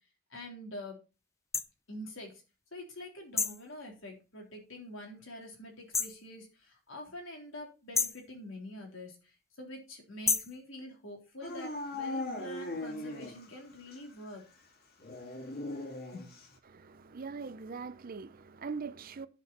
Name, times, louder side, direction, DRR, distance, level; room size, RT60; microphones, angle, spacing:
voice 1, 0.3-1.0 1.9-2.4 2.7-9.3 9.6-14.4 16.1-16.3, left 1 dB, 90° left, 3.7 m, -46 dB
sound 1, 1.5-1.7 3.4-3.7 5.9-6.2 7.9-8.3 10.3-10.6, left 5 dB, 15° left, 0.5 m, -30 dB
Dog / Siren, 11.4-13.6 13.9-14.0 15.0-16.5, left 2 dB, 55° left, 2.0 m, -39 dB
voice 2, 16.6-19.3, right 5 dB, 45° right, 0.6 m, -41 dB
10.5 x 6.9 x 4.3 m
head